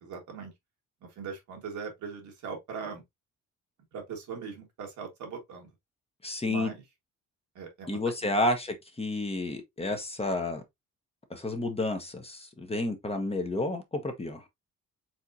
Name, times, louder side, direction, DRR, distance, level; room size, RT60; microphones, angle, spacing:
voice 1, 0.0-0.5 1.0-3.0 3.9-5.7 6.4-6.8 7.6-8.3, right 6 dB, 75° right, 1.8 m, -40 dB
voice 2, 6.2-6.7 7.9-10.6 11.3-14.4, left 2 dB, 20° left, 1.1 m, -30 dB
4.4 x 3.6 x 2.6 m
cardioid pair, 90°, 30 cm